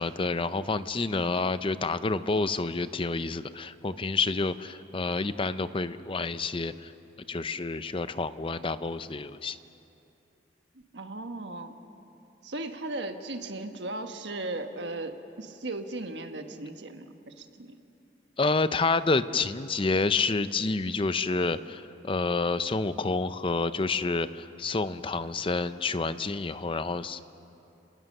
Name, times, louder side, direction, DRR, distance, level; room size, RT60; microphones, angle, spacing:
voice 1, 0.0-6.9 7.3-9.6 18.4-27.2, left 3 dB, 30° left, 13 dB, 0.6 m, -29 dB
voice 2, 10.9-11.7 12.4-17.7, right 2 dB, 70° right, 6 dB, 1.4 m, -37 dB
30.0 x 19.0 x 6.6 m, 2.8 s
head